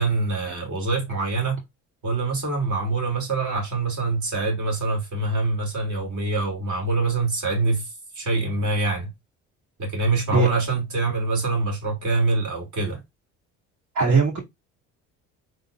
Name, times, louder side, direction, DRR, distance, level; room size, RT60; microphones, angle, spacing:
voice 1, 0.0-1.6 2.0-7.9 8.2-9.1 9.8-13.0, right 3 dB, 55° right, 2.1 m, -25 dB
voice 2, 13.9-14.4, right 4 dB, 75° right, 2.4 m, -19 dB
3.9 x 3.1 x 2.4 m
supercardioid pair, 75°, 35 cm